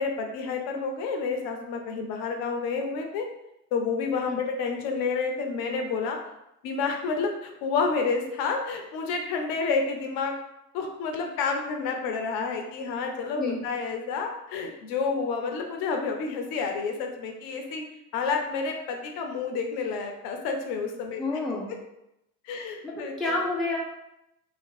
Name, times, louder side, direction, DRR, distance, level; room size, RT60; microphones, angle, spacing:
voice 1, 0.0-3.3 3.7-6.2 6.6-10.3 10.7-17.8 18.1-21.2 22.5-23.1, left 4 dB, 50° left, 3 dB, 0.6 m, -29 dB
voice 2, 21.2-21.7 22.8-23.8, left 2 dB, ahead, -3 dB, 0.4 m, -29 dB
2.8 x 2.5 x 2.6 m, 0.85 s
hypercardioid pair, 70°, 46 cm